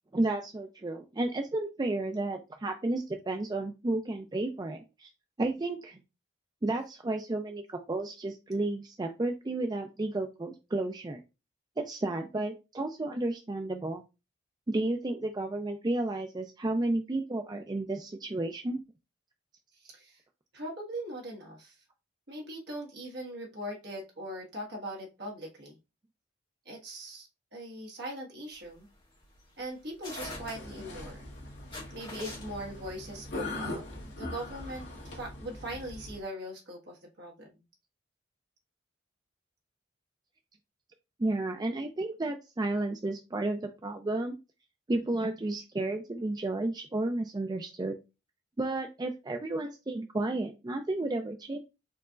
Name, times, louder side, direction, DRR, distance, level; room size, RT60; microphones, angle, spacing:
voice 1, 0.1-5.1 5.4-6.0 6.6-11.2 11.8-14.0 14.7-18.8 41.2-44.4 44.9-48.0 48.6-51.6, right 2 dB, 20° right, 5 dB, 0.4 m, -32 dB
voice 2, 19.7-20.2 20.5-21.8 22.3-25.8 26.6-28.9 29.6-31.3 31.9-33.8 34.1-37.6, right 1 dB, 60° right, -1 dB, 1.5 m, -41 dB
sound 1, 28.5-35.1, left 2 dB, 25° left, 2.3 m, -46 dB
sound 2, 30.2-36.2, left 2 dB, 65° left, 1.6 m, -41 dB
4.5 x 4.0 x 2.4 m, 0.26 s
head